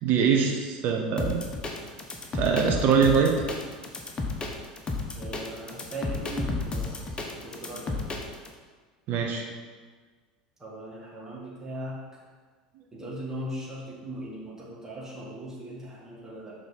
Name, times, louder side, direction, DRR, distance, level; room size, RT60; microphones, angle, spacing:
voice 1, 0.0-1.4 2.3-3.4 9.1-9.4, right 6 dB, 50° right, 2 dB, 1.0 m, -23 dB
sound 1, 1.2-8.5, left 3 dB, 25° left, 1.0 m, -32 dB
voice 2, 5.2-7.1 7.4-8.0 10.6-12.0 12.9-16.5, right 1 dB, 10° right, -7 dB, 2.0 m, -38 dB
6.6 x 4.0 x 5.2 m, 1.5 s
hypercardioid pair, 80°, 4 cm